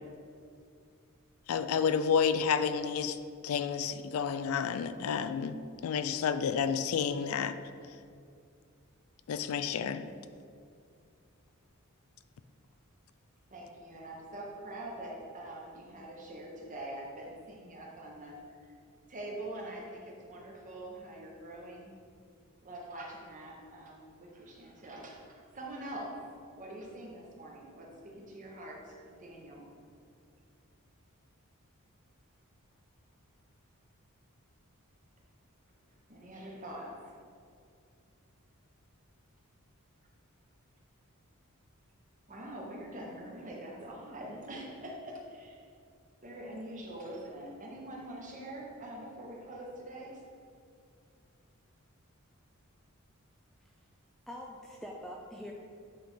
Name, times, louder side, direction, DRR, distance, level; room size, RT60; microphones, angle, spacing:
voice 1, 1.5-3.2 3.4-7.6 9.3-10.0, left 6 dB, 75° left, 11 dB, 0.3 m, -30 dB
voice 2, 13.5-18.7 19.1-21.9 22.6-26.3 26.6-29.6 36.1-37.2 42.3-45.6 46.2-50.2, right 1 dB, 35° right, -2 dB, 1.1 m, -44 dB
voice 3, 54.3-55.5, equal, ahead, -1 dB, 0.4 m, -44 dB
8.6 x 4.2 x 3.6 m, 2.3 s
head